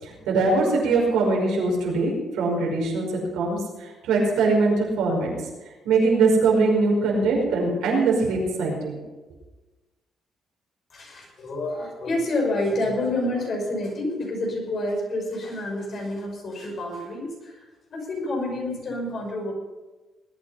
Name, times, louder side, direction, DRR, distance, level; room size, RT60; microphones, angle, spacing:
voice 1, 0.0-5.3 5.9-9.0, right 3 dB, 90° right, -1 dB, 5.4 m, -22 dB
voice 2, 10.9-17.6 17.9-19.5, left 1 dB, 55° left, 0 dB, 5.8 m, -28 dB
20.0 x 9.5 x 5.7 m, 1.2 s
cardioid pair, 90°, 0 cm